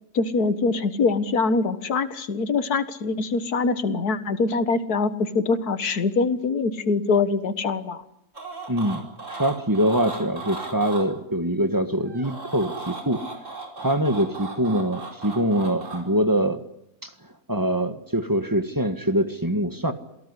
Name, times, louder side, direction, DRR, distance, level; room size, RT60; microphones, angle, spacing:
voice 1, 0.1-8.0, left 4 dB, 90° left, 12 dB, 2.0 m, -23 dB
sound 1, 8.3-11.0 12.0-16.0, right 3 dB, 55° right, 5.2 m, -36 dB
voice 2, 8.7-13.2 13.8-16.6 17.0-17.1 17.5-19.9, right 1 dB, 15° right, 8 dB, 1.7 m, -24 dB
28.0 x 18.0 x 9.9 m, 0.78 s
omnidirectional pair, 1.6 m